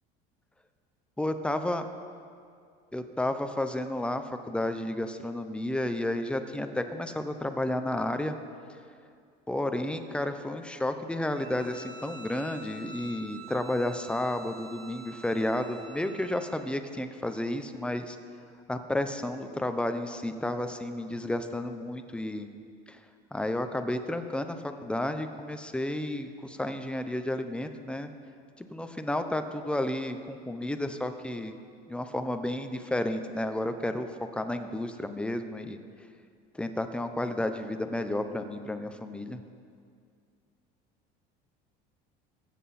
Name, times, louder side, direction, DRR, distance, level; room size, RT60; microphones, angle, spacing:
voice 1, 1.2-1.9 2.9-8.4 8.7-8.8 9.5-18.2 18.7-22.5 22.9-23.0 23.3-28.1 28.6-31.6 31.9-35.8 36.5-39.4, left 1 dB, 5° left, 8 dB, 0.8 m, -32 dB
Bowed string instrument, 11.3-16.6, right 3 dB, 70° right, 2.7 m, -47 dB
22.5 x 7.8 x 4.3 m, 2.3 s
supercardioid pair, 115°, 21 cm